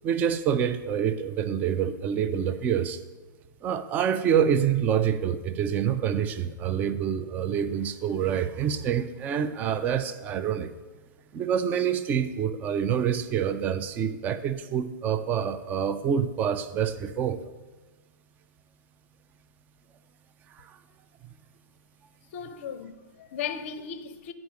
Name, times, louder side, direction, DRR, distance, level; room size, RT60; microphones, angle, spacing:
voice 1, 0.0-3.0 3.6-10.7 11.3-17.4 20.6-20.8, right 8 dB, 15° right, 0.4 m, -27 dB
voice 2, 22.3-24.3, left 7 dB, 35° left, 0.6 m, -36 dB
10.5 x 4.8 x 5.0 m
figure-of-eight pair, 120°, 11 cm